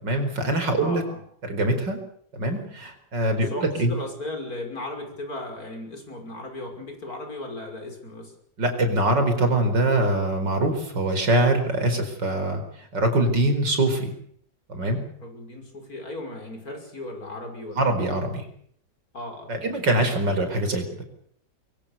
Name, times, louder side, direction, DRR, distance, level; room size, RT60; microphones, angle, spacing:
voice 1, 0.0-1.0 1.5-2.0 2.3-3.5 3.8-3.9 8.6-12.6 12.9-14.1 14.7-15.0 17.8-18.5 19.5-21.0, right 1 dB, 85° right, 7 dB, 5.4 m, -23 dB
voice 2, 0.8-1.2 3.4-8.3 15.2-17.9 19.1-19.8, left 2 dB, 55° left, 4 dB, 6.3 m, -36 dB
24.0 x 23.5 x 7.0 m, 0.65 s
omnidirectional pair, 1.9 m